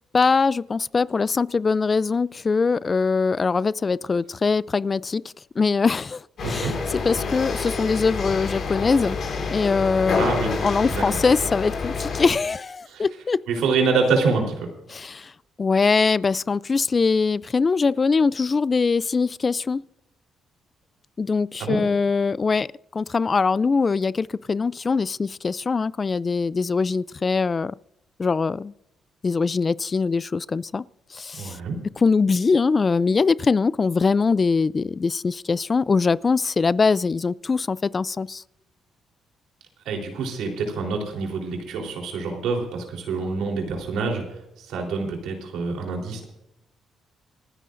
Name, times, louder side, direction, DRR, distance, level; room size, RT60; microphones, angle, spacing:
voice 1, 0.1-5.2 5.6-9.2 9.5-10.3 10.6-13.4 14.9-15.3 15.6-19.8 21.2-22.7 22.9-27.7 28.2-28.7 29.2-30.8 31.1-31.6 32.0-38.4, left 4 dB, 35° left, 0.3 m, -22 dB
sound 1, 6.4-12.3, left 4 dB, 60° left, 5.5 m, -28 dB
voice 2, 6.4-6.7 10.2-10.5 10.9-11.0 12.9-13.1 13.5-14.7 21.6-21.8 31.4-31.8 39.9-44.2 44.6-46.2, right 4 dB, 85° right, 3.7 m, -26 dB
28.0 x 10.0 x 2.6 m
cardioid pair, 90°, 0 cm